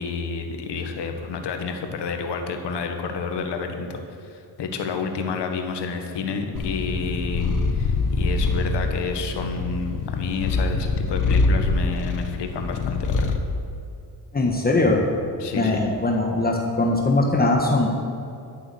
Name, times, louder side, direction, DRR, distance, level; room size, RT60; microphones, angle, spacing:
voice 1, 0.0-13.4 15.4-15.8, left 5 dB, 85° left, 5 dB, 1.6 m, -30 dB
Purr, 6.5-13.5, left 3 dB, 50° left, 1.2 m, -24 dB
voice 2, 14.3-15.0 15.5-17.9, left 2 dB, 20° left, 1 dB, 1.4 m, -21 dB
12.0 x 8.7 x 7.0 m, 2.6 s
cardioid pair, 105°, 41 cm